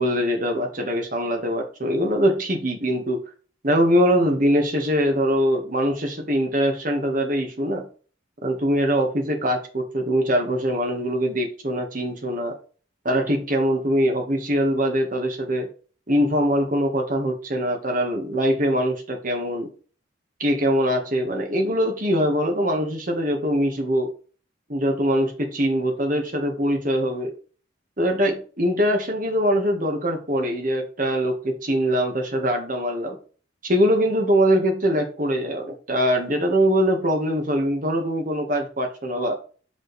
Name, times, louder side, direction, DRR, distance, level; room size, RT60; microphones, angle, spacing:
voice 1, 0.0-3.2 3.6-7.8 8.4-12.6 13.0-15.7 16.1-19.7 20.4-24.1 24.7-27.3 28.0-33.2 33.6-39.4, equal, 40° right, 3 dB, 1.5 m, -22 dB
6.1 x 5.4 x 3.2 m, 0.38 s
head